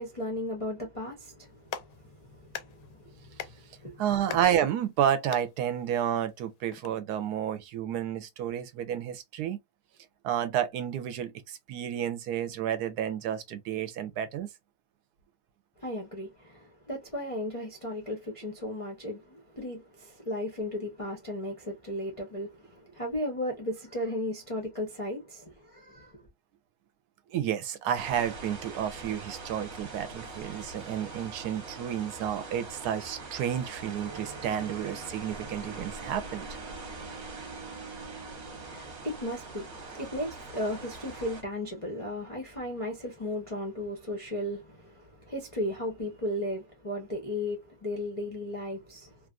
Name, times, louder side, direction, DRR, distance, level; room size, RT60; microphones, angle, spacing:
voice 1, 0.0-4.0 4.3-4.4 15.8-26.3 38.5-49.2, left 1 dB, 45° left, 0.4 m, -36 dB
Clapping, 1.4-6.9, left 10 dB, 75° left, 1.1 m, -45 dB
voice 2, 4.0-9.6 10.2-14.5 27.3-36.6, right 10 dB, 70° right, 1.1 m, -31 dB
sound 1, 28.0-41.4, right 3 dB, 45° right, 1.1 m, -43 dB
sound 2, 34.0-40.4, right 4 dB, 30° right, 0.5 m, -48 dB
3.2 x 2.4 x 2.4 m
omnidirectional pair, 1.9 m